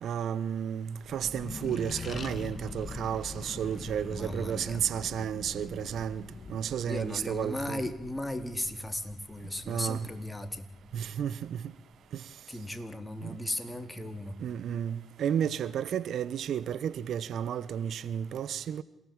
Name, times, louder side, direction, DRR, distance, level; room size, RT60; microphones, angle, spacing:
voice 1, 0.0-6.2 6.5-7.8 9.7-10.1 10.9-11.6 12.1-12.2 13.2-13.3 14.4-18.8, right 9 dB, 70° right, 1.1 m, -32 dB
Accelerating revving vroom, 1.0-11.9, left 4 dB, 50° left, 1.9 m, -44 dB
voice 2, 4.1-4.8 6.9-10.7 12.5-14.4, left 1 dB, 15° left, 4.1 m, -36 dB
27.5 x 18.5 x 8.9 m
hypercardioid pair, 50°, 0 cm